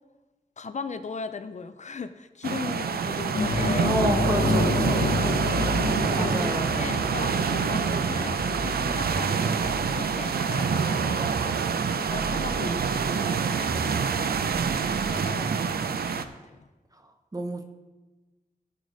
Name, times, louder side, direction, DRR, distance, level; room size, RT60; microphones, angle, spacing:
voice 1, 0.6-3.9 4.8-5.3 6.0-14.8 15.1-16.6, left 5 dB, 50° left, 11 dB, 0.4 m, -38 dB
sound 1, 2.4-16.2, right 6 dB, 90° right, 0.5 m, -26 dB
sound 2, 3.3-12.3 12.6-12.8 14.9-15.0, left 3 dB, 75° left, 1.1 m, -30 dB
sound 3, 3.6-4.0 4.8-5.8 6.1-7.0 7.8-10.0 10.6-11.6 12.1-13.0 13.6-15.6, right 1 dB, 60° right, 1.8 m, -38 dB
voice 2, 3.8-5.1 6.2-6.9 17.3-17.6, right 2 dB, 25° right, 6 dB, 0.9 m, -29 dB
14.5 x 4.9 x 3.9 m, 1.2 s
wide cardioid pair, 85°, 15 cm